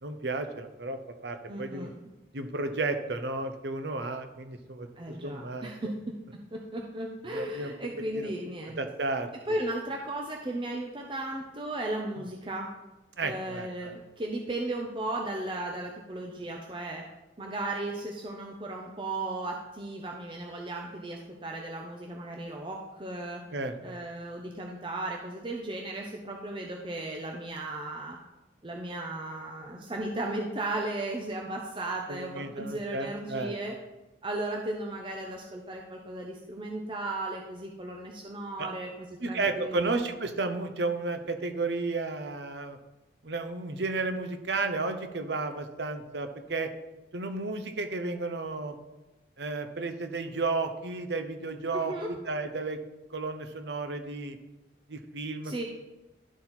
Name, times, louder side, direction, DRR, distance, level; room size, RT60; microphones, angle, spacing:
voice 1, 0.0-1.9 2.3-5.7 7.3-7.7 8.2-8.3 8.8-9.3 13.2-13.9 23.5-24.0 32.1-33.5 38.6-38.7 39.2-42.8 43.2-46.7 47.1-48.8 49.4-52.8 53.1-54.4 54.9-55.6, right 3 dB, 65° right, 8 dB, 0.8 m, -33 dB
voice 2, 1.5-1.9 5.0-6.1 6.5-8.8 9.5-12.7 13.2-17.0 17.4-23.4 23.8-28.2 28.6-33.8 34.2-40.0 51.7-52.1 55.4-55.6, right 2 dB, 25° right, 1 dB, 0.6 m, -35 dB
11.5 x 4.1 x 4.3 m, 1.0 s
head